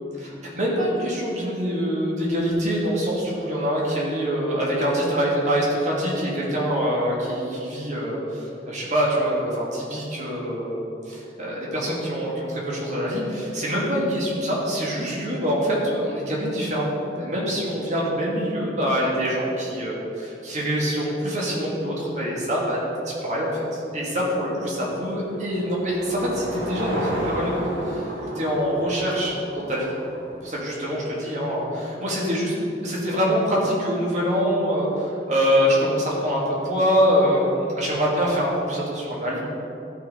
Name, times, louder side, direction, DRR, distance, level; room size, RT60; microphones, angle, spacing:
voice 1, 0.2-22.8 23.1-29.9 30.4-32.5 32.8-39.4, equal, 40° right, -5 dB, 2.0 m, -25 dB
Car passing by / Engine, 24.6-30.8, right 1 dB, 80° right, 1.8 m, -33 dB
12.5 x 4.4 x 4.9 m, 2.8 s
head